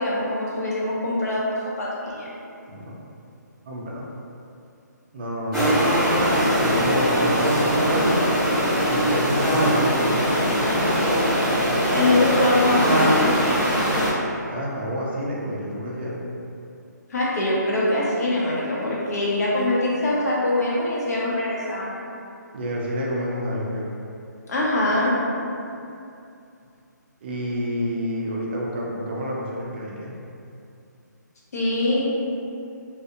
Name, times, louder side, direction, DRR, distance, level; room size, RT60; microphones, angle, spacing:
voice 1, 0.0-2.3 11.9-13.2 17.1-22.0 24.5-25.2 31.5-32.2, left 1 dB, 55° left, -5 dB, 0.6 m, -23 dB
voice 2, 3.7-4.0 5.1-5.8 6.5-8.3 8.8-10.5 14.4-16.2 22.5-23.9 27.2-30.1, equal, 35° right, -4 dB, 0.3 m, -28 dB
sound 1, 5.5-14.1, equal, ahead, 0.7 m, -21 dB
2.4 x 2.0 x 2.7 m, 2.6 s
hypercardioid pair, 150°, 10 cm